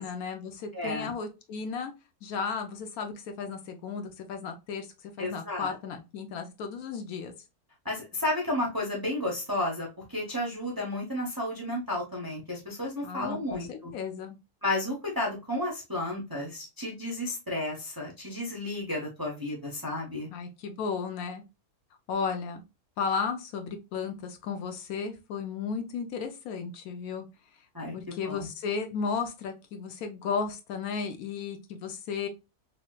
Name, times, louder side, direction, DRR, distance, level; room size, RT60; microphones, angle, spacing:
voice 1, 0.0-1.9 2.2-4.9 5.2-7.3 13.0-14.4 20.3-21.4 22.1-22.6 23.0-27.3 27.9-32.3, left 5 dB, 75° left, 5 dB, 1.1 m, -34 dB
voice 2, 0.7-1.1 5.2-5.7 7.8-13.9 14.6-20.3 27.7-28.5, left 1 dB, 25° right, -2 dB, 0.5 m, -32 dB
3.1 x 2.9 x 2.2 m, 0.27 s
omnidirectional pair, 1.6 m